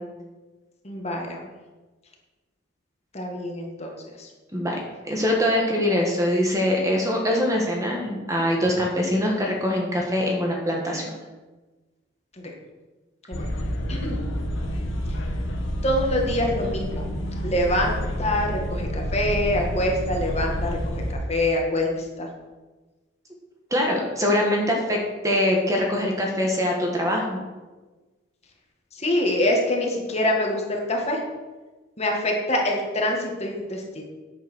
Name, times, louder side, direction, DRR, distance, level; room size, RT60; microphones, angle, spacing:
voice 1, 0.8-1.5 3.1-4.3 12.4-12.5 13.3-13.5 13.9-14.2 15.8-17.0 17.4-17.9 18.2-21.0 21.3-22.3 28.9-31.2 32.0-34.0, left 1 dB, 35° left, 0 dB, 1.9 m, -25 dB
voice 2, 5.0-11.1 23.7-25.0 25.2-27.4, left 1 dB, 15° right, 0 dB, 1.6 m, -23 dB
sound 1, 13.3-21.1, equal, 75° left, 1.6 m, -29 dB
9.0 x 7.8 x 6.3 m, 1.2 s
head